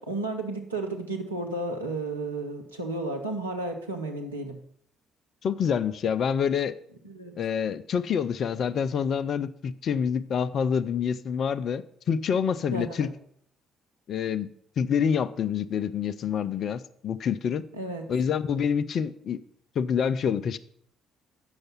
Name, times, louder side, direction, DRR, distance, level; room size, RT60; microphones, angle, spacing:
voice 1, 0.0-4.6 7.0-7.4 12.7-13.1 17.7-18.0, right 2 dB, 85° right, 2 dB, 0.8 m, -33 dB
voice 2, 5.4-6.7 7.4-13.1 14.1-14.5 14.8-17.6 18.1-19.4 19.8-20.6, left 7 dB, 50° left, 13 dB, 0.4 m, -27 dB
7.9 x 6.5 x 5.9 m, 0.65 s
figure-of-eight pair, 45°, 0 cm